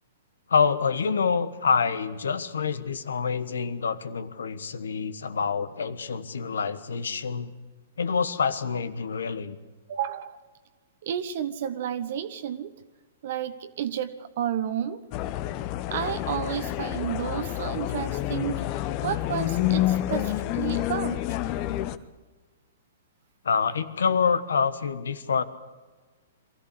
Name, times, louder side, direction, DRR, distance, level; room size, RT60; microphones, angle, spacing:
voice 1, 0.5-7.5 8.0-9.6 23.4-25.4, left 5 dB, 70° left, 13 dB, 1.3 m, -26 dB
voice 2, 9.9-10.4 11.0-12.7 13.2-15.0 15.9-18.6 19.0-21.3, right 9 dB, 55° right, 10 dB, 1.1 m, -31 dB
sound 1, 15.1-22.0, left 14 dB, 35° left, 0.9 m, -28 dB
23.5 x 14.5 x 8.3 m, 1.3 s
figure-of-eight pair, 115°, 0 cm